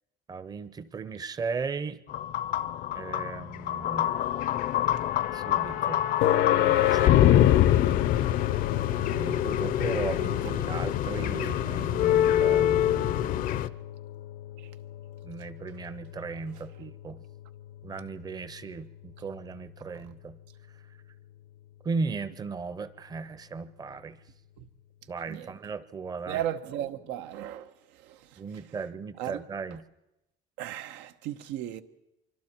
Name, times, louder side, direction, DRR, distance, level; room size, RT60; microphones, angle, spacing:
voice 1, 0.3-2.0 2.9-4.1 5.3-6.0 6.4-7.5 9.0-13.6 15.2-17.2 17.8-20.4 21.8-24.2 25.1-26.4 28.4-29.8, right 4 dB, 20° right, 0.7 m, -36 dB
sound 1, 2.1-13.7, left 12 dB, 50° left, 0.6 m, -25 dB
sound 2, 6.2-21.1, left 13 dB, 85° left, 0.9 m, -33 dB
voice 2, 26.3-27.7 29.2-29.4 30.6-31.8, right 12 dB, 90° right, 1.2 m, -34 dB
25.5 x 24.5 x 4.5 m
cardioid pair, 155°, 18 cm